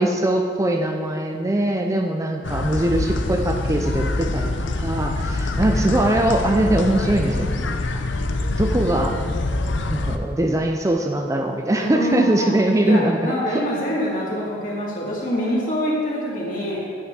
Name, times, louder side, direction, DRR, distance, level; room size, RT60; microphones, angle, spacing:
voice 1, 0.0-4.5 4.8-8.0 8.6-9.1 9.9-13.6, right 1 dB, 15° right, 3 dB, 0.5 m, -21 dB
sound 1, 2.4-10.2, left 2 dB, 70° left, 0.6 m, -25 dB
voice 2, 11.8-12.5 12.8-16.8, equal, 45° left, -5 dB, 2.9 m, -25 dB
9.4 x 9.4 x 4.8 m, 2.2 s
head